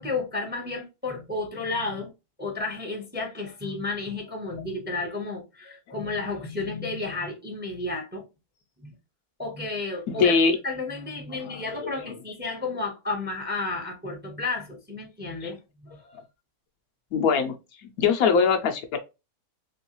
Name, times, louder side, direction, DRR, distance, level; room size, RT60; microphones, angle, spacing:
voice 1, 0.0-2.1 2.4-8.2 8.8-9.0 9.4-10.3 10.6-16.2, left 3 dB, 10° right, 0.7 m, -32 dB
voice 2, 10.1-10.6 11.4-11.9 15.4-15.5 17.1-17.5 17.8-19.0, left 5 dB, 75° left, 1.1 m, -23 dB
3.2 x 3.1 x 2.9 m
omnidirectional pair, 1.6 m